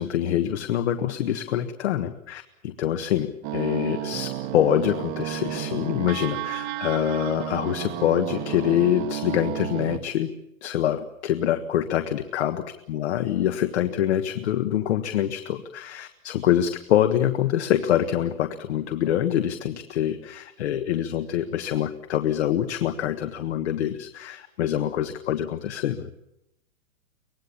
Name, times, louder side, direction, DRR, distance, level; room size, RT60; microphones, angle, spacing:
voice 1, 0.0-10.3 10.6-26.1, left 11 dB, 50° left, 9 dB, 1.5 m, -25 dB
sound 1, 3.4-10.0, right 11 dB, 20° right, 1.2 m, -32 dB
24.5 x 18.5 x 8.6 m, 0.85 s
hypercardioid pair, 160°, 41 cm